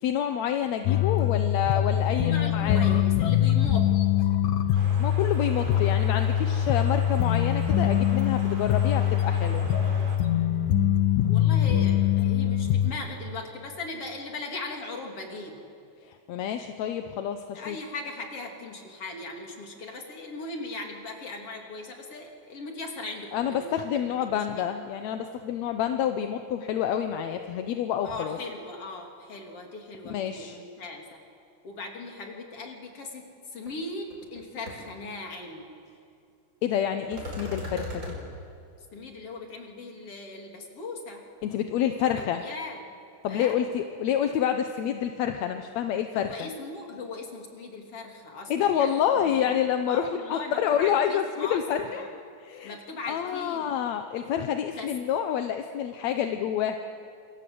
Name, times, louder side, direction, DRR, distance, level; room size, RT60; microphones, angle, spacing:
voice 1, 0.0-3.1 5.0-9.7 16.0-17.8 23.3-28.4 30.1-30.6 36.6-38.1 41.4-42.4 43.2-46.5 48.5-52.1 52.4-52.8 53.1-56.8, left 9 dB, 70° left, 6 dB, 1.9 m, -28 dB
sound 1, 0.9-12.9, left 10 dB, 85° left, 2.8 m, -23 dB
voice 2, 2.1-3.8 11.2-15.6 17.5-23.8 24.3-24.7 28.0-31.2 31.6-33.2 33.5-35.8 38.9-41.2 42.1-42.8 43.3-43.6 46.1-49.0 49.4-49.6 49.9-52.1 52.6-53.8 54.7-54.9, left 3 dB, 45° left, 1 dB, 3.9 m, -39 dB
sound 2, 4.7-10.2, right 3 dB, 65° right, 4.8 m, -43 dB
sound 3, 33.7-33.8 34.1-34.4 34.7-34.8 37.1-38.2, left 1 dB, 20° right, 5.9 m, -36 dB
27.5 x 26.5 x 7.9 m, 2.5 s
omnidirectional pair, 3.7 m